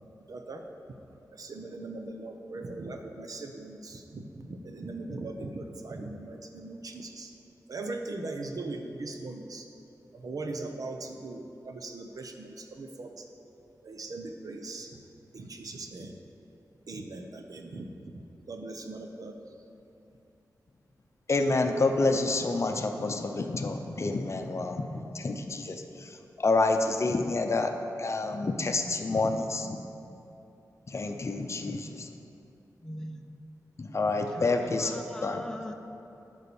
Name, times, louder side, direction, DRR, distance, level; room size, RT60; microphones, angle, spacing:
voice 1, 0.3-0.6 1.3-7.3 7.7-9.7 10.1-13.3 13.8-14.9 15.3-16.1 16.9-17.9 18.5-19.3, right 2 dB, 65° right, 4 dB, 0.8 m, -39 dB
voice 2, 21.3-27.7 28.0-29.8 30.9-32.1 33.8-35.4, left 3 dB, 45° left, 5 dB, 0.7 m, -28 dB
voice 3, 32.8-33.2 34.3-34.5 34.8-35.7, left 1 dB, 10° left, 4 dB, 0.7 m, -40 dB
9.3 x 5.6 x 7.0 m, 2.8 s
wide cardioid pair, 90°, 7 cm